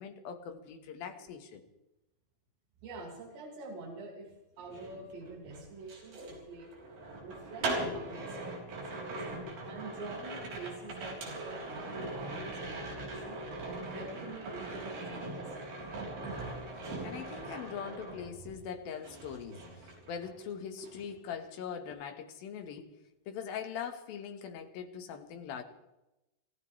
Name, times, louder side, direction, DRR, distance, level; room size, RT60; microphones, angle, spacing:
voice 1, 0.0-1.6 9.3-9.6 16.9-22.9 23.3-25.6, left 7 dB, 65° left, 6 dB, 3.0 m, -42 dB
voice 2, 2.8-6.7 7.2-13.4 13.9-15.7, right 3 dB, 90° right, -3 dB, 4.7 m, -46 dB
sound 1, 4.6-18.7 19.0-20.5 20.8-21.1, right 2 dB, 60° right, 5.5 m, -41 dB
28.0 x 15.0 x 3.3 m, 0.95 s
omnidirectional pair, 5.0 m